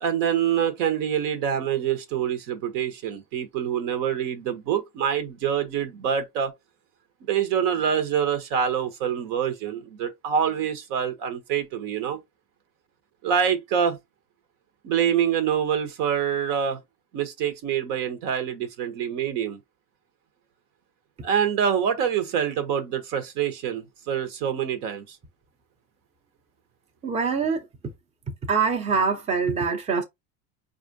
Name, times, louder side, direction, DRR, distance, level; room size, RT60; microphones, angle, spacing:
voice 1, 0.0-6.5 7.3-12.2 13.2-14.0 14.8-16.8 17.1-19.6 21.2-25.2, right 8 dB, 65° right, 1.0 m, -26 dB
voice 2, 27.0-27.6 28.5-30.0, right 5 dB, 15° right, 0.5 m, -24 dB
4.2 x 2.5 x 2.6 m
hypercardioid pair, 100°, 49 cm